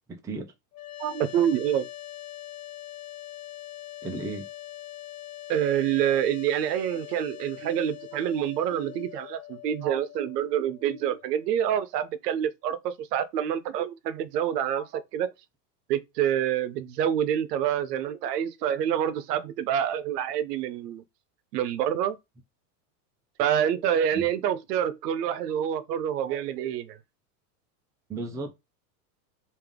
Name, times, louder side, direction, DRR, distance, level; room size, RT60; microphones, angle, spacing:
voice 1, 0.1-0.5 4.0-4.5 24.1-24.3 28.1-28.5, right 3 dB, 10° right, 0.4 m, -34 dB
sound 1, 0.7-11.8, left 14 dB, 65° left, 1.1 m, -43 dB
voice 2, 1.0-1.9 5.5-15.3 15.9-21.0 21.5-22.2 23.4-27.0, right 10 dB, 85° right, 0.7 m, -27 dB
3.4 x 2.7 x 3.6 m
supercardioid pair, 130°, 47 cm